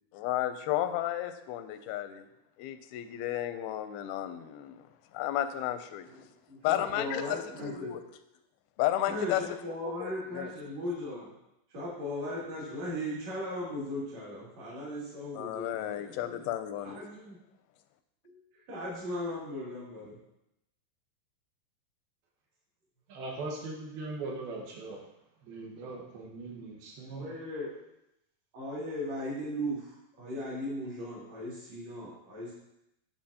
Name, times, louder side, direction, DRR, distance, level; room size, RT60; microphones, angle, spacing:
voice 1, 0.1-2.3 2.6-4.8 5.1-6.1 6.6-8.0 8.8-9.4 9.8-10.5 15.3-17.0, left 13 dB, 90° left, 10 dB, 2.5 m, -33 dB
voice 2, 6.1-8.0 9.1-11.3 11.7-16.5 16.8-17.4 18.2-18.4 18.7-20.2 27.1-27.7 28.5-32.5, left 1 dB, 50° right, -7 dB, 3.7 m, -37 dB
voice 3, 23.1-25.0 25.4-27.2, right 3 dB, 90° right, -1 dB, 3.3 m, -40 dB
10.5 x 6.4 x 2.8 m, 0.85 s
omnidirectional pair, 4.3 m